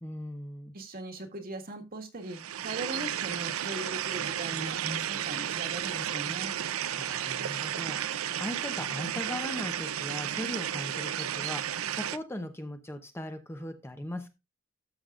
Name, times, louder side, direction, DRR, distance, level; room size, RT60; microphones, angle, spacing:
voice 1, 0.0-0.7 7.0-14.3, left 1 dB, 10° left, 6 dB, 0.8 m, -39 dB
voice 2, 0.7-6.6, right 1 dB, 45° right, 5 dB, 1.7 m, -39 dB
sound 1, 2.3-12.2, right 10 dB, 85° right, 0.5 m, -33 dB
13.0 x 6.6 x 2.5 m, 0.23 s
head